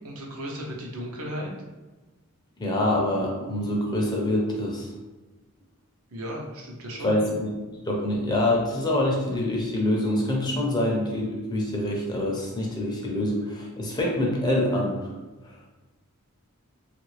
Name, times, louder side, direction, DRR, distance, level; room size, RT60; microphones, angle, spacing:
voice 1, 0.0-1.5 6.1-7.4, equal, 80° right, -1 dB, 0.7 m, -35 dB
voice 2, 2.6-4.9 7.0-7.5 7.8-15.0 15.5-15.6, left 1 dB, 20° left, -2 dB, 0.5 m, -25 dB
3.2 x 2.5 x 3.1 m, 1.2 s
head